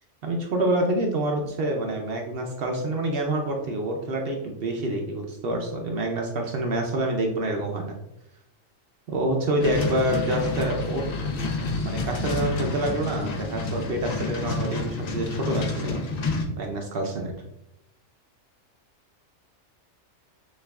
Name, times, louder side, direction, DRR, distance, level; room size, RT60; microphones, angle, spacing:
voice 1, 0.2-8.0 9.1-11.0 11.8-16.0 16.6-17.3, right 1 dB, 60° right, 2 dB, 0.7 m, -27 dB
sound 1, 9.6-16.5, left 3 dB, 55° left, 0.4 m, -29 dB
6.3 x 2.4 x 2.2 m, 0.86 s
omnidirectional pair, 1.4 m